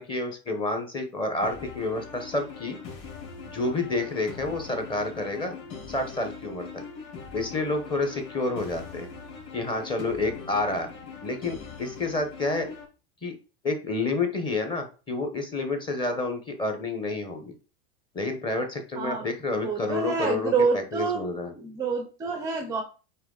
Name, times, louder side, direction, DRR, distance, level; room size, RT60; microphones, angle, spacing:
voice 1, 0.0-2.8 3.4-5.5 5.9-6.8 7.3-9.1 9.5-10.9 11.2-12.7 13.2-13.4 13.6-17.5 18.1-21.5, left 2 dB, 15° left, 5 dB, 0.9 m, -29 dB
sound 1, 1.4-12.8, left 5 dB, 35° left, 3.0 m, -41 dB
voice 2, 19.0-21.3 21.5-22.8, right 4 dB, 10° right, 5 dB, 0.5 m, -27 dB
9.0 x 3.0 x 3.9 m, 0.35 s
supercardioid pair, 160°, 34 cm